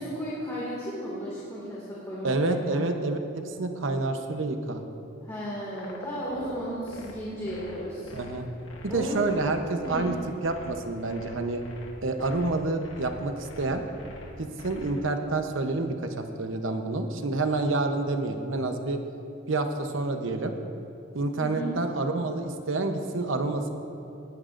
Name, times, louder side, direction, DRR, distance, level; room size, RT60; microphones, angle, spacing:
voice 1, 0.0-2.8 5.2-8.1 8.9-9.3 9.8-10.1 21.4-21.7, equal, 15° left, -8 dB, 2.2 m, -34 dB
voice 2, 2.2-4.8 8.1-8.5 8.8-10.1 10.4-11.6 12.0-13.8 14.4-19.0 19.5-20.5 21.1-23.7, right 2 dB, 70° right, 6 dB, 0.8 m, -28 dB
sound 1, 5.7-15.0, left 2 dB, 65° left, 1.5 m, -44 dB
18.5 x 11.5 x 2.6 m, 2.7 s
head